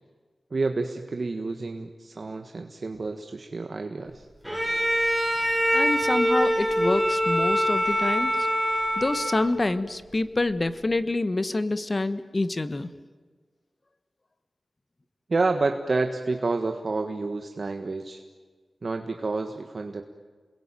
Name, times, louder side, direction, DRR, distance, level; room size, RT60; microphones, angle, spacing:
voice 1, 0.5-4.3 15.3-18.2 18.8-20.0, right 3 dB, 50° right, 5 dB, 1.5 m, -29 dB
Bowed string instrument, 4.4-9.7, equal, ahead, 5.7 m, -24 dB
voice 2, 5.7-8.5 9.0-12.9, left 2 dB, 35° left, 13 dB, 1.2 m, -27 dB
29.0 x 21.5 x 9.1 m, 1.4 s
wide cardioid pair, 95°, 0 cm